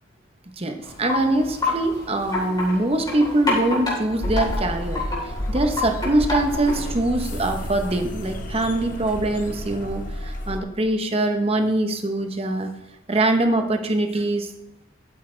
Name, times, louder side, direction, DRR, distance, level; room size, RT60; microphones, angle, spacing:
voice 1, 0.6-5.1 5.5-12.7 13.1-14.5, right 1 dB, 30° right, 6 dB, 0.8 m, -23 dB
Wind chime, 0.8-7.0, left 2 dB, 20° left, 3.6 m, -29 dB
sound 1, 4.2-10.6, equal, 40° left, 1.0 m, -31 dB
12.0 x 8.8 x 3.3 m, 0.90 s
head